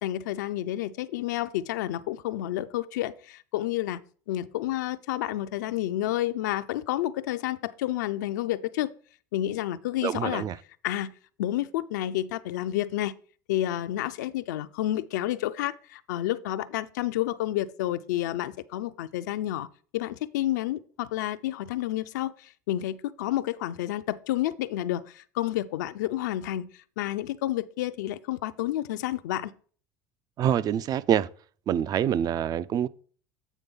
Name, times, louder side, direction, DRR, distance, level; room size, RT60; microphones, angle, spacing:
voice 1, 0.0-4.0 4.3-8.9 9.3-10.4 10.8-11.1 11.4-13.1 13.5-19.7 19.9-29.5, left 14 dB, 80° left, 0.4 m, -30 dB
voice 2, 10.0-10.6 30.4-31.3 31.7-32.9, right 9 dB, 45° right, 0.4 m, -25 dB
8.3 x 3.4 x 5.4 m
hypercardioid pair, 80°, 9 cm